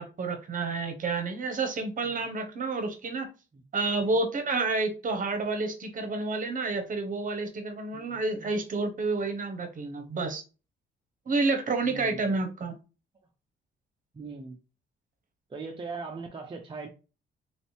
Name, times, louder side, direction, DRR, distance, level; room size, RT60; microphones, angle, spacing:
voice 1, 0.0-3.3 3.7-10.4 11.3-12.8, right 3 dB, 40° right, 0.9 m, -29 dB
voice 2, 7.9-8.5 11.8-12.3 14.1-14.6 15.5-16.9, right 4 dB, 25° right, 0.5 m, -40 dB
3.1 x 2.7 x 3.1 m
cardioid pair, 90°, 20 cm